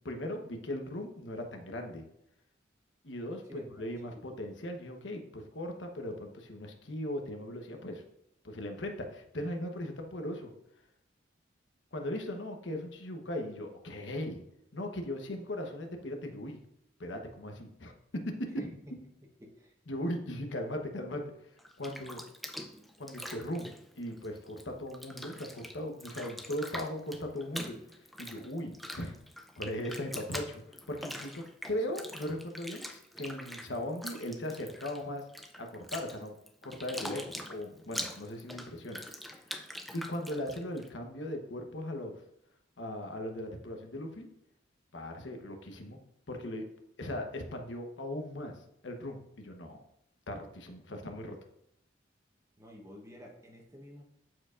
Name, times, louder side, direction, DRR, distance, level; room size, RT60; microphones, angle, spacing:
voice 1, 0.0-2.0 3.0-8.0 8.4-10.5 11.9-14.4 14.7-16.6 17.0-18.3 19.9-21.5 21.8-22.2 23.0-27.8 28.2-29.1 29.6-35.2 35.6-36.3 36.6-39.0 39.9-42.1 42.8-44.3 44.9-46.0 46.3-46.6 47.0-48.5 48.8-49.8 50.3-51.4, left 1 dB, 75° left, 4 dB, 1.1 m, -38 dB
voice 2, 3.5-3.8 4.1-4.2 18.6-18.7 19.4-19.7 52.6-54.0, left 1 dB, 15° right, 0 dB, 1.1 m, -49 dB
Bathtub (filling or washing), 21.6-24.6 24.9-40.9, equal, ahead, 0.4 m, -44 dB
13.0 x 4.6 x 2.5 m, 0.77 s
head